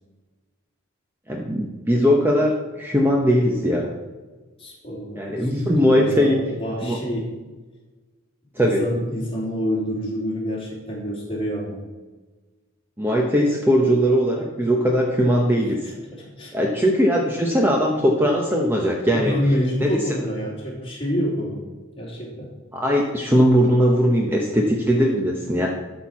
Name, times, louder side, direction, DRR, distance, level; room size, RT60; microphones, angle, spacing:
voice 1, 1.3-3.9 5.2-6.4 6.8-7.0 8.6-8.8 13.0-15.8 16.5-19.3 19.8-19.9 22.7-25.7, equal, 10° right, 0 dB, 0.9 m, -19 dB
voice 2, 4.6-7.3 8.6-11.8 15.8-16.5 19.1-21.6 22.0-22.5, equal, 25° left, -3 dB, 2.8 m, -27 dB
12.0 x 4.5 x 7.1 m, 1.3 s
head